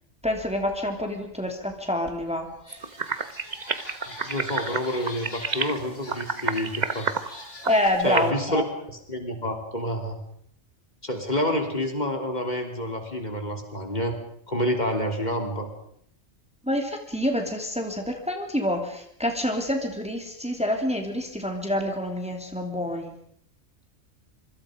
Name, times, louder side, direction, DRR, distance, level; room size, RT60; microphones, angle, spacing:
voice 1, 0.2-2.5 7.6-8.6 16.6-23.2, left 1 dB, 5° right, 3 dB, 2.9 m, -27 dB
sound 1, 2.1-2.2 2.5-7.9, left 2 dB, 75° left, 3.8 m, -43 dB
sound 2, 2.7-8.3, right 4 dB, 35° right, 1.3 m, -30 dB
voice 2, 4.2-7.1 8.0-8.6 8.9-10.2 11.0-14.2 14.5-15.7, equal, 35° left, 4 dB, 3.6 m, -28 dB
26.0 x 24.5 x 5.2 m, 0.68 s
omnidirectional pair, 1.2 m